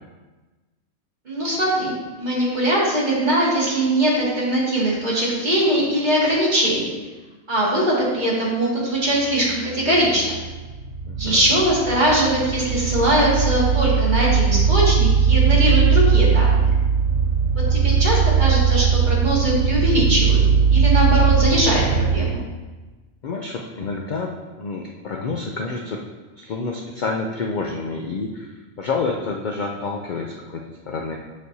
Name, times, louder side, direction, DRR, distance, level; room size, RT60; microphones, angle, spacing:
voice 1, 1.3-6.9 7.5-10.3 11.2-16.7 17.7-20.4 20.7-22.4, right 1 dB, 35° right, -6 dB, 1.9 m, -21 dB
sound 1, 9.4-22.2, right 6 dB, 80° right, 1.3 m, -19 dB
voice 2, 11.0-11.6 17.6-17.7 23.2-26.0 26.4-31.2, left 4 dB, 65° left, 1 dB, 0.4 m, -29 dB
7.2 x 6.1 x 2.7 m, 1.2 s
omnidirectional pair, 1.4 m